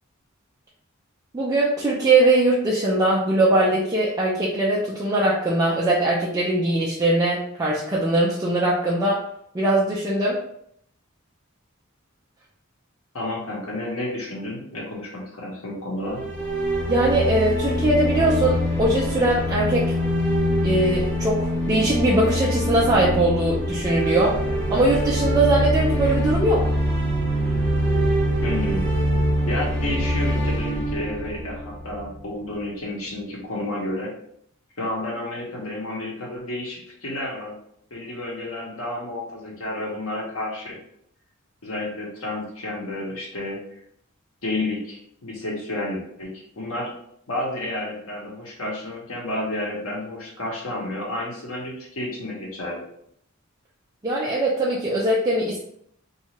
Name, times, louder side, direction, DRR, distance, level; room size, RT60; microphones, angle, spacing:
voice 1, 1.3-9.2 9.5-10.4 16.9-19.9 20.6-24.3 24.7-26.7 54.0-55.6, right 2 dB, 20° right, -5 dB, 0.4 m, -21 dB
voice 2, 13.1-16.2 28.4-28.9 29.5-34.1 34.8-37.6 37.9-40.8 41.6-43.6 44.4-46.9 47.3-52.8, left 1 dB, 85° left, -2 dB, 1.0 m, -31 dB
sound 1, 16.1-32.2, equal, 5° left, 1.3 m, -24 dB
2.6 x 2.3 x 3.0 m, 0.70 s
head